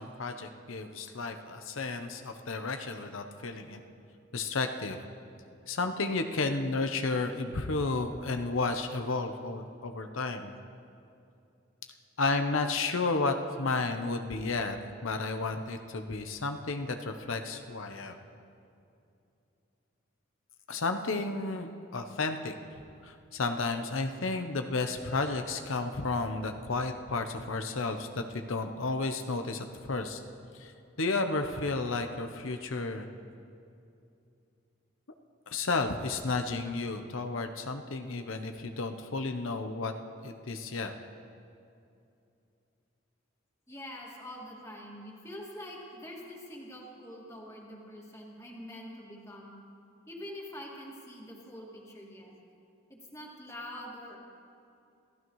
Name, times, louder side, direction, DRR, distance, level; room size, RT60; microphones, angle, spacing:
voice 1, 0.0-3.8 4.3-5.0 5.7-10.5 12.2-14.8 15.0-18.1 20.7-22.5 23.0-30.2 30.6-30.7 31.0-33.1 35.5-39.9 40.2-40.9, left 3 dB, 90° left, 6 dB, 0.8 m, -32 dB
voice 2, 43.7-49.6 50.1-52.3 52.9-54.2, left 1 dB, 15° left, -2 dB, 2.2 m, -45 dB
27.5 x 15.5 x 3.1 m, 2.6 s
head